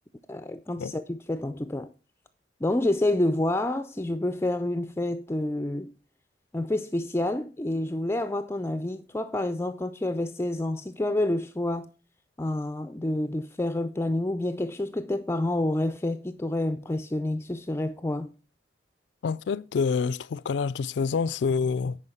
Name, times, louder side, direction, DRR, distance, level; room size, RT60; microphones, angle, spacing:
voice 1, 0.3-1.9 2.6-5.9 6.5-11.9 12.4-18.3, left 1 dB, 15° left, 0.4 m, -28 dB
voice 2, 19.2-22.0, left 5 dB, 80° left, 0.4 m, -27 dB
9.9 x 4.7 x 5.6 m
head